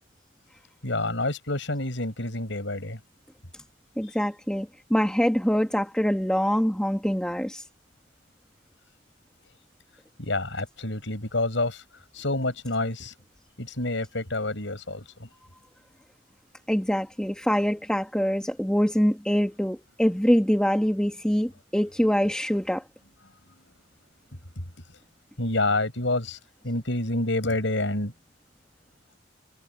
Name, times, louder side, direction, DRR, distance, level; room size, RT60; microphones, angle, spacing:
voice 1, 0.8-3.0 10.2-11.8 12.1-13.1 13.6-15.3 25.4-26.4 26.6-28.1, left 2 dB, 80° left, 5.1 m, -28 dB
voice 2, 4.0-7.6 16.7-22.8, equal, 5° left, 1.5 m, -24 dB
head